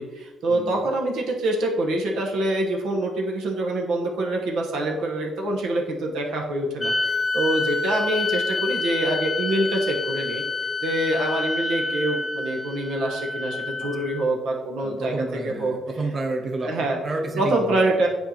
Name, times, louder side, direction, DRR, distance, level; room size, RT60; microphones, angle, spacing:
voice 1, 0.0-10.4 10.8-15.8 16.6-17.0 17.4-18.1, right 1 dB, 85° right, 0 dB, 1.0 m, -25 dB
sound 1, 6.8-14.3, left 3 dB, 20° left, 0.5 m, -28 dB
voice 2, 14.8-18.1, right 2 dB, 35° right, 4 dB, 0.7 m, -30 dB
7.8 x 4.5 x 2.8 m, 1.3 s
cardioid pair, 90°, 0 cm